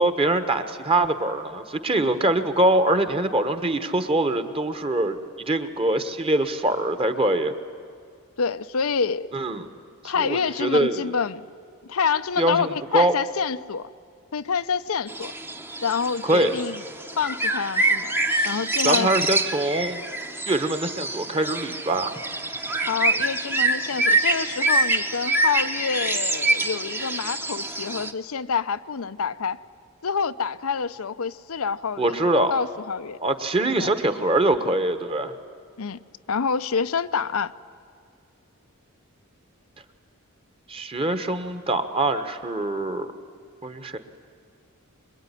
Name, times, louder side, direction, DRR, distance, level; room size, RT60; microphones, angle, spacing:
voice 1, 0.0-5.2 5.5-7.5 9.3-9.6 10.2-11.1 12.4-13.1 16.2-16.5 18.3-20.0 20.5-22.2 32.0-32.5 33.2-35.3 40.7-43.1 43.6-44.0, right 1 dB, 25° right, 9 dB, 1.3 m, -23 dB
voice 2, 8.4-9.3 10.0-11.5 11.9-13.9 14.3-15.3 15.8-16.8 17.2-18.1 18.4-19.1 22.9-29.6 30.0-33.2 33.7-33.9 35.8-36.0 36.3-37.5, left 6 dB, 75° left, 12 dB, 0.6 m, -27 dB
sound 1, 15.1-28.1, right 2 dB, 10° right, 0.9 m, -25 dB
24.5 x 22.0 x 9.9 m, 2.3 s
head